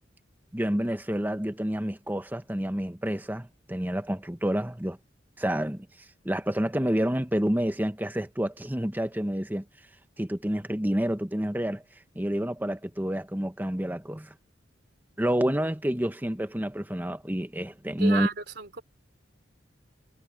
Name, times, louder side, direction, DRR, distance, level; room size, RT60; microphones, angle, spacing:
voice 1, 0.5-5.0 5.4-5.9 6.2-9.6 10.2-11.8 12.1-14.3 15.2-18.3, equal, 10° right, 1.1 m, -28 dB
voice 2, 18.0-18.8, right 4 dB, 60° right, 3.5 m, -32 dB
head